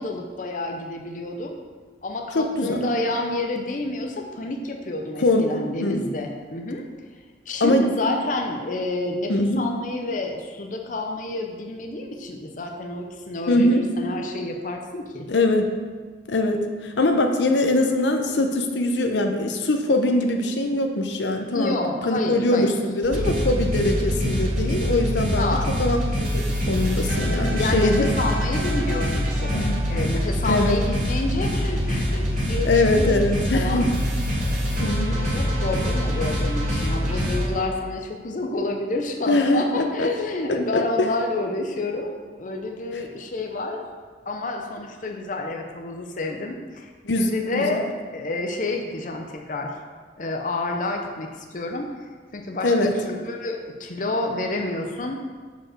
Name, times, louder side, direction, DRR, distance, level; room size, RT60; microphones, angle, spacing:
voice 1, 0.0-1.6 2.0-6.8 7.5-15.3 21.5-22.7 25.4-25.8 27.6-33.2 33.5-33.9 34.4-43.8 44.3-46.9 47.2-47.8 48.1-49.7 50.2-51.9 52.3-55.2, left 2 dB, 45° left, 2 dB, 0.7 m, -29 dB
voice 2, 2.3-2.9 5.2-5.5 5.8-6.0 7.6-7.9 9.3-9.7 13.5-13.9 15.3-15.7 16.3-21.8 22.1-28.1 29.5-29.8 30.4-30.8 32.6-33.9 34.8-35.2 39.3-40.1 40.5-41.1 47.0-47.8 52.6-52.9, left 2 dB, 85° left, 4 dB, 0.8 m, -22 dB
sound 1, 23.0-37.5, equal, 45° right, 2.4 m, -24 dB
7.1 x 5.1 x 6.0 m, 1.5 s
head